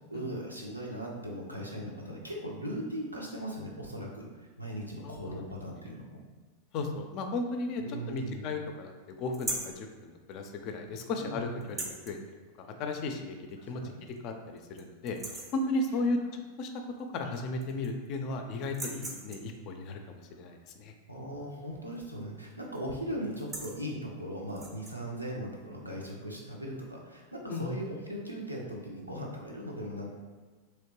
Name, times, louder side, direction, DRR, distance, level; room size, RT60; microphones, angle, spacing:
voice 1, 0.1-4.2 4.6-6.2 7.8-8.5 11.1-11.6 13.6-13.9 21.1-30.1, equal, 85° right, -2 dB, 0.6 m, -39 dB
voice 2, 5.0-5.4 6.7-12.2 12.6-13.4 13.7-13.8 14.2-15.2 15.5-16.7 17.1-20.9 27.5-27.8, left 2 dB, 40° left, 5 dB, 0.4 m, -35 dB
sound 1, 9.3-9.8 11.6-12.2 13.5-13.6 14.1-14.2 14.6-14.8 15.1-15.6 17.0-17.1 17.4-18.1 18.6-19.6 21.9-22.2 22.5-22.8 23.2-23.8 24.5-25.0, right 2 dB, 15° right, 0.5 m, -39 dB
3.0 x 2.8 x 3.0 m, 1.4 s
figure-of-eight pair, 90°, 0 cm